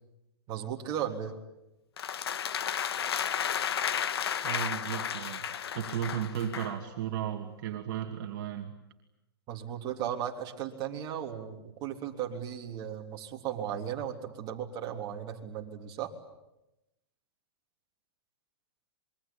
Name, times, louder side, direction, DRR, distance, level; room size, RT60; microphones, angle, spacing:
voice 1, 0.5-1.4 9.5-16.1, right 9 dB, 30° right, 1 dB, 3.5 m, -36 dB
sound 1, 2.0-6.8, left 8 dB, 75° left, 1.5 m, -33 dB
voice 2, 4.4-5.5 5.7-8.7, right 9 dB, 50° right, 3 dB, 2.6 m, -34 dB
27.0 x 22.5 x 8.9 m, 0.93 s
hypercardioid pair, 140°, 13 cm